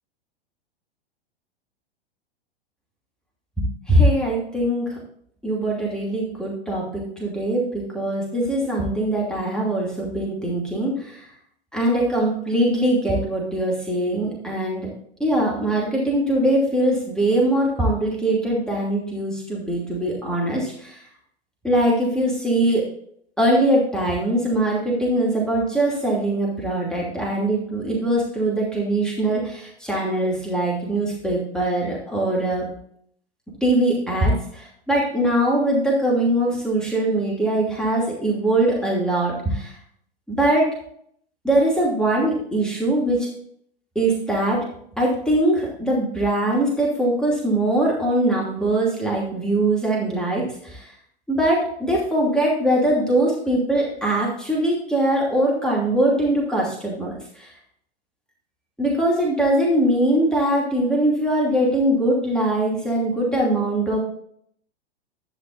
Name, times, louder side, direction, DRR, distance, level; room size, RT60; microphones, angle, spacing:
voice 1, 3.6-4.9 5.4-11.2 11.7-14.9 15.2-21.0 21.6-22.9 23.4-32.6 33.6-39.7 40.3-40.7 41.4-43.3 43.9-44.6 45.0-50.8 51.3-57.5 58.8-64.0, right 1 dB, ahead, -4 dB, 2.7 m, -22 dB
12.0 x 9.2 x 2.6 m, 0.65 s
figure-of-eight pair, 100°, 31 cm